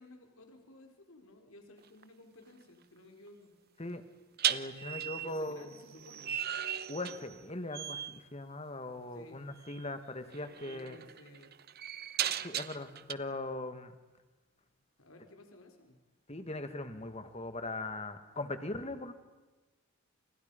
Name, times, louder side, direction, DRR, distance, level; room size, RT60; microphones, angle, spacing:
voice 1, 0.0-3.5 4.7-6.4 9.1-9.5 10.7-11.5 15.0-16.0, left 1 dB, 70° left, 4 dB, 4.0 m, -55 dB
sound 1, 1.8-2.0 4.4-7.5 7.7-8.2 9.6-9.8 10.3-13.1, right 10 dB, 45° right, 0.9 m, -37 dB
voice 2, 4.5-5.7 6.9-11.0 12.4-13.9 16.3-19.1, left 2 dB, 30° left, 9 dB, 2.1 m, -40 dB
30.0 x 29.5 x 5.5 m, 1.2 s
head